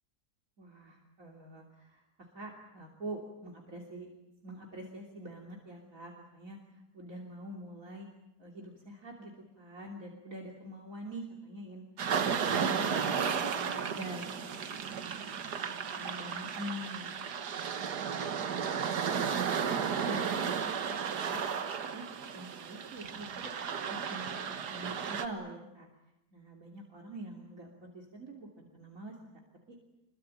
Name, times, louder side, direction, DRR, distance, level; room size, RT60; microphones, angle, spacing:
voice 1, 0.6-2.0 2.3-4.1 4.4-6.6 6.9-8.1 8.4-11.8 12.2-12.9 13.2-15.1 15.5-15.7 16.0-17.8 19.5-21.4 21.9-22.1 22.3-23.5 23.9-24.4 24.7-25.9 26.3-29.1 29.7-29.8, right 1 dB, 55° right, 0 dB, 3.5 m, -45 dB
sound 1, 12.0-25.3, right 7 dB, 85° right, 1.9 m, -34 dB
27.0 x 22.5 x 9.0 m, 0.89 s
omnidirectional pair, 1.7 m